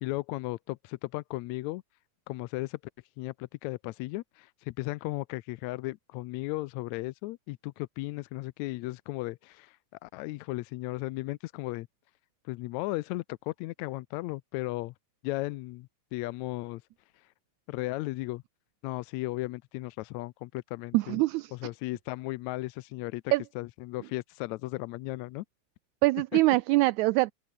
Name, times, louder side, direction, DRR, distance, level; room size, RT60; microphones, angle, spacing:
voice 1, 0.0-1.8 2.3-2.8 3.2-11.9 12.5-14.9 15.2-16.8 17.7-18.4 18.8-21.2 21.5-25.5, left 19 dB, 80° left, 1.7 m, -35 dB
voice 2, 20.9-21.5 23.3-23.4 26.0-27.3, right 20 dB, 80° right, 1.8 m, -23 dB
open air
omnidirectional pair, 3.6 m